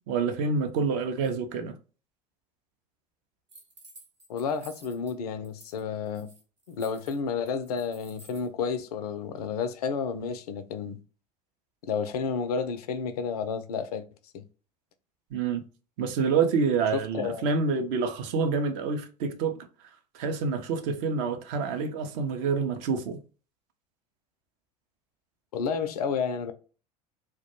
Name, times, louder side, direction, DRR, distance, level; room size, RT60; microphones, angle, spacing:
voice 1, 0.1-1.7 15.3-15.6 16.0-19.7 20.1-23.2, right 5 dB, 50° right, 0.5 m, -27 dB
sound 1, 3.5-5.1 5.4-5.8 6.1-8.5, right 2 dB, 85° right, 0.9 m, -52 dB
voice 2, 4.3-6.3 6.7-11.0 11.8-14.0 14.3-14.4 16.9-17.4 25.5-26.5, left 6 dB, 65° left, 0.4 m, -31 dB
2.2 x 2.1 x 2.8 m
figure-of-eight pair, 70°, 21 cm